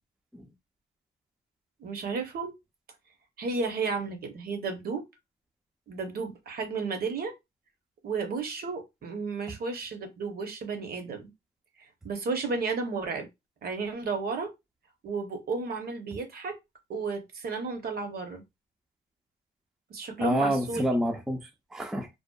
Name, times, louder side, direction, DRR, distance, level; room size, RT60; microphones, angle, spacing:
voice 1, 1.8-2.5 3.4-5.1 5.9-7.3 8.0-11.3 12.0-13.3 13.6-14.5 15.0-16.5 16.9-18.4 19.9-20.8, right 4 dB, 50° right, 0.7 m, -33 dB
voice 2, 20.2-22.1, equal, ahead, 0.3 m, -28 dB
2.6 x 2.1 x 2.2 m
cardioid pair, 90°, 20 cm